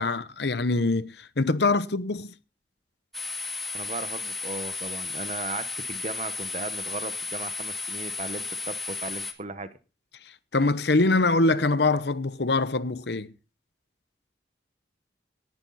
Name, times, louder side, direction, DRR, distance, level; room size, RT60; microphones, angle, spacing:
voice 1, 0.0-2.3 10.5-13.3, left 3 dB, 65° left, 0.9 m, -24 dB
sound 1, 3.1-9.3, left 4 dB, ahead, 2.0 m, -34 dB
voice 2, 3.7-9.7, right 3 dB, 40° right, 1.2 m, -36 dB
18.0 x 11.0 x 4.2 m
head